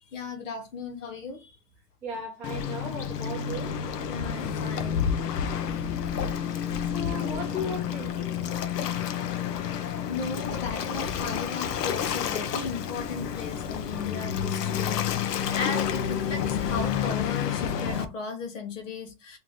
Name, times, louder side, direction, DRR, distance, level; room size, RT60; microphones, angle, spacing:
voice 1, 0.1-1.6 4.1-5.1 9.8-19.4, left 4 dB, 50° left, 1.0 m, -36 dB
voice 2, 2.0-3.7 6.9-8.3, left 1 dB, 5° right, 0.9 m, -36 dB
Waves surf, 2.4-18.0, left 8 dB, 75° left, 0.8 m, -30 dB
3.2 x 2.9 x 3.8 m
supercardioid pair, 180°, 49 cm